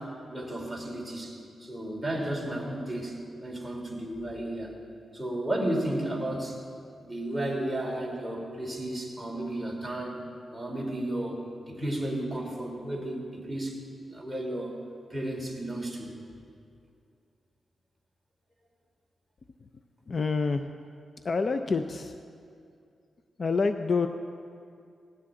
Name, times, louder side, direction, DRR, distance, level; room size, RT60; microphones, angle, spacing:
voice 1, 0.0-4.8 5.1-6.6 7.0-10.2 10.5-11.4 11.7-13.8 14.1-14.8 15.1-16.1, right 1 dB, 5° right, -2 dB, 3.1 m, -33 dB
voice 2, 20.1-20.7 21.2-22.2 23.4-24.1, left 4 dB, 45° left, 8 dB, 0.5 m, -27 dB
18.5 x 16.0 x 3.8 m, 2.4 s
cardioid pair, 90°, 0 cm